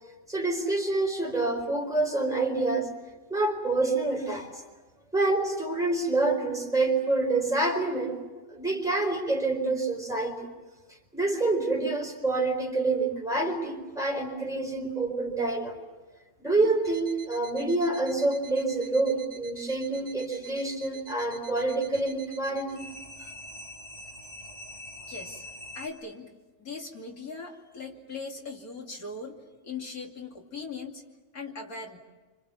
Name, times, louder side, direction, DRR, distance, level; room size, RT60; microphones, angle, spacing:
voice 1, 0.3-2.9 3.3-4.5 5.1-8.2 8.5-10.5 11.1-15.8 16.4-22.9, right 2 dB, ahead, 1 dB, 4.7 m, -27 dB
sound 1, 16.8-25.9, right 1 dB, 55° left, 5.2 m, -45 dB
voice 2, 25.1-25.4 25.7-26.3 26.6-29.4 29.6-31.0 31.3-32.0, left 4 dB, 80° left, 1 dB, 3.3 m, -39 dB
29.0 x 26.5 x 7.2 m, 1.2 s
omnidirectional pair, 1.5 m